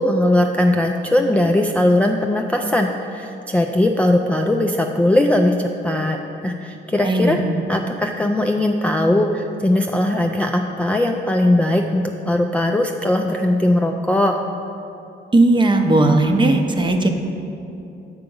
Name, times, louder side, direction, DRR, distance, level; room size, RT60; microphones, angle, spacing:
voice 1, 0.0-5.5 5.8-6.2 6.4-7.4 7.7-14.3, left 1 dB, 5° left, 2 dB, 0.3 m, -19 dB
voice 2, 6.9-7.4 15.3-17.1, right 2 dB, 25° right, 5 dB, 0.6 m, -16 dB
6.7 x 4.8 x 5.3 m, 2.7 s
cardioid pair, 90°, 20 cm